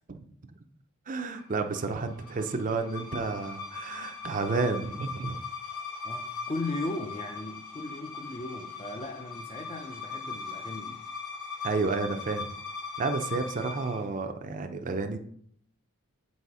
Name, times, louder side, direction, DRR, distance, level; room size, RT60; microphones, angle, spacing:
voice 1, 1.1-5.4 11.6-12.5 13.0-15.2, right 4 dB, 35° right, 0.5 m, -31 dB
sound 1, 1.4-14.1, left 5 dB, 75° left, 2.0 m, -40 dB
voice 2, 6.0-11.0, left 2 dB, 25° left, 0.5 m, -37 dB
7.5 x 4.1 x 4.7 m
head